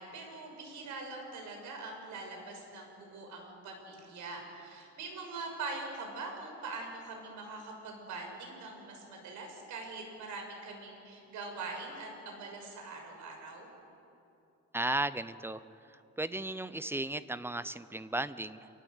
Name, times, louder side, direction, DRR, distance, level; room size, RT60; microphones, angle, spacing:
voice 1, 0.0-13.7, right 3 dB, 80° right, 3 dB, 6.1 m, -43 dB
voice 2, 14.7-15.6 16.2-18.7, right 2 dB, 10° right, 14 dB, 0.6 m, -35 dB
28.0 x 18.5 x 8.0 m, 2.8 s
cardioid pair, 135°, 29 cm